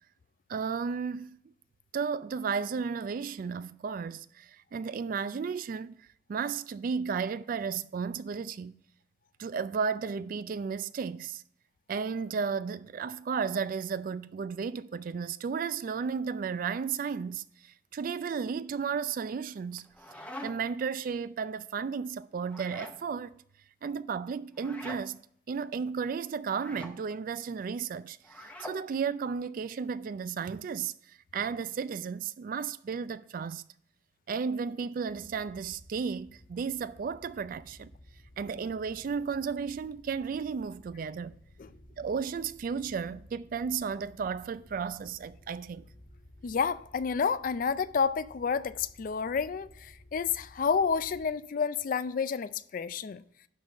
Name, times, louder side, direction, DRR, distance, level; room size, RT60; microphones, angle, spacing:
voice 1, 0.5-1.4 1.9-8.8 9.4-11.4 11.9-19.9 20.4-23.3 23.8-25.2 25.5-33.6 34.3-37.9 38.4-41.4 42.0-45.9, right 6 dB, 50° right, 0.3 m, -34 dB
sound 1, 19.7-20.8 22.4-23.0 24.5-25.0 26.5-27.0 28.2-28.8, left 1 dB, 10° left, 0.8 m, -44 dB
sound 2, 35.1-51.3, equal, 85° left, 1.7 m, -56 dB
voice 2, 46.4-53.2, left 6 dB, 50° left, 0.4 m, -30 dB
11.0 x 3.9 x 5.4 m
head